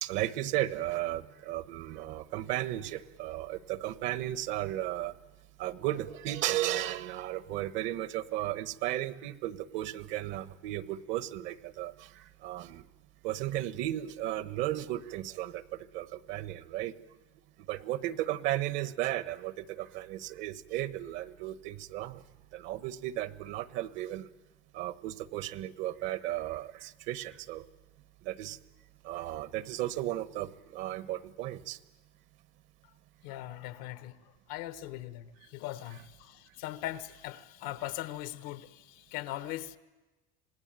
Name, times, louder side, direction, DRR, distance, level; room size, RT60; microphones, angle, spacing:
voice 1, 0.0-5.1 5.6-12.8 13.2-16.9 17.7-22.2 22.5-24.3 24.7-27.6 28.2-28.6 29.0-31.8, right 14 dB, 65° right, 1.2 m, -35 dB
voice 2, 33.2-39.8, left 14 dB, 90° left, 1.3 m, -40 dB
26.5 x 19.0 x 9.0 m
cardioid pair, 135°, 21 cm